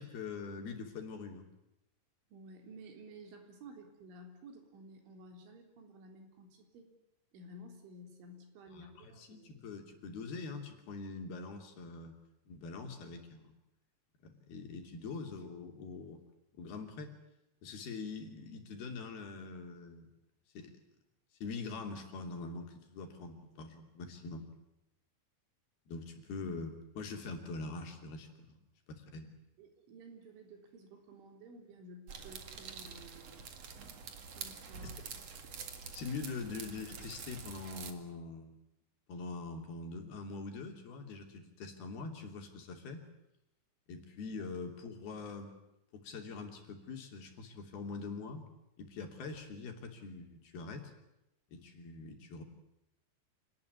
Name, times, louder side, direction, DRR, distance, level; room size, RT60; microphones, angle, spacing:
voice 1, 0.0-1.5 8.7-12.2 12.5-13.6 14.2-16.2 16.5-17.1 17.6-20.1 20.5-20.7 21.4-24.5 25.9-28.6 28.9-29.3 34.8-34.9 35.9-38.6 39.1-43.1 43.9-45.6 45.9-48.5 48.8-50.9 51.5-52.4, left 4 dB, 60° left, 4 dB, 4.8 m, -44 dB
voice 2, 2.3-6.9 7.3-9.5 29.6-33.5 34.3-35.0, right 1 dB, 90° right, 5 dB, 6.1 m, -53 dB
sound 1, 32.1-37.9, right 6 dB, 45° right, 2.4 m, -47 dB
27.5 x 19.5 x 9.6 m, 0.87 s
omnidirectional pair, 5.3 m